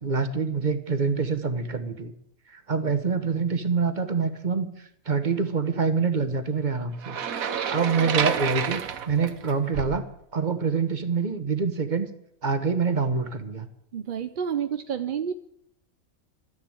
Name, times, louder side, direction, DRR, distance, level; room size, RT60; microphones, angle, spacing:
voice 1, 0.0-2.1 2.5-4.7 5.0-7.2 7.7-8.8 9.1-10.0 10.3-12.1 12.4-13.7, right 5 dB, 35° right, 9 dB, 1.3 m, -25 dB
sound 1, 7.0-10.1, right 8 dB, 85° right, 1.4 m, -29 dB
voice 2, 13.9-15.3, right 8 dB, 50° right, 9 dB, 0.6 m, -29 dB
12.5 x 10.0 x 8.9 m, 0.73 s
omnidirectional pair, 1.4 m